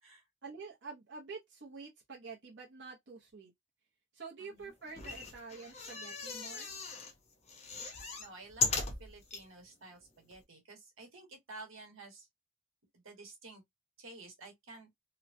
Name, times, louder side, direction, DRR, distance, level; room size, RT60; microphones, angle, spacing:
voice 1, 0.4-3.5 4.1-6.7, right 4 dB, 60° right, 0.7 m, -48 dB
voice 2, 4.4-4.7 8.2-12.3 12.9-13.6 14.0-14.9, right 3 dB, 90° right, 1.3 m, -52 dB
sound 1, 4.9-7.1 7.5-9.4 10.0-10.1 10.3-10.4, left 4 dB, 30° left, 0.6 m, -37 dB
3.0 x 2.1 x 2.6 m
head